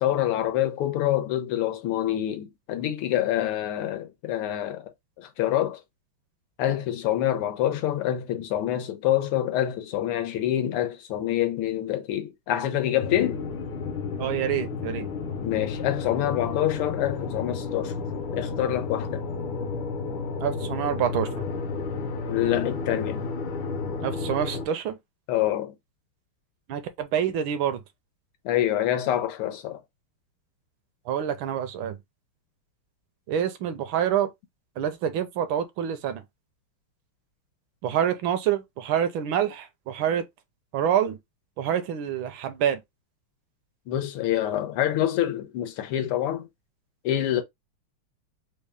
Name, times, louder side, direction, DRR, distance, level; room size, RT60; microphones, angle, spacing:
voice 1, 0.0-4.9 5.2-5.8 6.6-13.4 15.4-18.0 18.3-19.2 22.3-23.2 25.3-25.7 28.4-29.8 43.9-46.5 47.0-47.4, left 12 dB, 90° left, 1.6 m, -26 dB
sound 1, 13.0-24.7, left 4 dB, 70° left, 1.5 m, -32 dB
voice 2, 14.2-15.1 20.4-21.3 24.0-25.0 26.7-27.8 31.1-32.0 33.3-34.3 34.8-36.2 37.8-40.2 40.7-41.2 41.6-42.8, right 9 dB, 75° right, 1.3 m, -26 dB
4.2 x 2.1 x 3.4 m
omnidirectional pair, 2.4 m